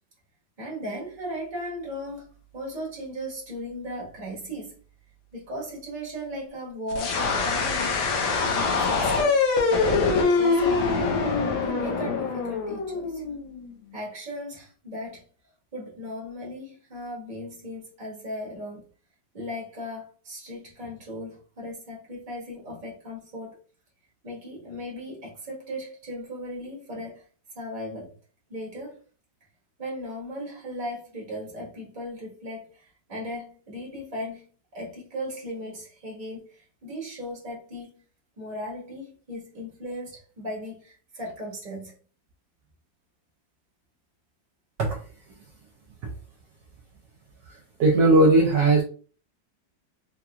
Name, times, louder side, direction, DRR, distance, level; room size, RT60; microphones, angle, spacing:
voice 1, 0.6-4.8 5.3-8.0 8.5-9.4 10.2-11.3 11.7-13.3 13.9-15.2 15.7-18.8 19.3-23.6 24.2-27.2 27.5-28.1 28.5-29.0 29.8-38.0 38.4-41.9, equal, 25° right, 1.3 m, -37 dB
sound 1, 6.9-13.7, left 4 dB, 85° left, 1.5 m, -24 dB
voice 2, 47.8-48.8, right 2 dB, 70° right, 1.3 m, -18 dB
3.8 x 2.9 x 2.3 m
omnidirectional pair, 2.1 m